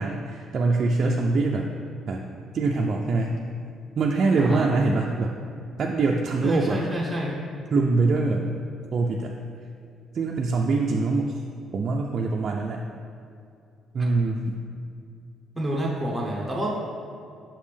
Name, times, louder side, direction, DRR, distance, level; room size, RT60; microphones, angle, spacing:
voice 1, 0.0-1.7 2.1-2.2 2.5-3.4 4.0-5.4 5.8-6.8 7.7-8.5 8.9-9.3 10.1-11.4 11.7-12.8 13.9-14.4, right 3 dB, 45° right, 0 dB, 0.4 m, -23 dB
voice 2, 4.4-4.7 6.4-7.4 15.5-16.9, right 1 dB, 5° right, -4 dB, 0.9 m, -28 dB
5.7 x 5.2 x 3.3 m, 2.4 s
cardioid pair, 115°, 0 cm